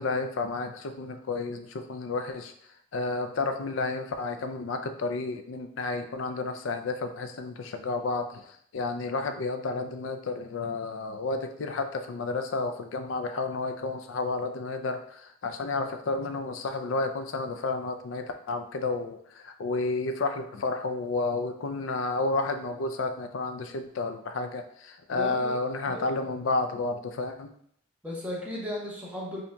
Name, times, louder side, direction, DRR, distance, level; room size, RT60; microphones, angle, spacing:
voice 1, 0.0-2.5 2.9-8.5 8.7-27.5, left 3 dB, 90° left, 7 dB, 0.4 m, -31 dB
voice 2, 25.2-25.5 25.9-26.1 28.0-29.4, left 1 dB, 10° right, -4 dB, 0.9 m, -35 dB
5.5 x 2.7 x 2.2 m, 0.67 s
head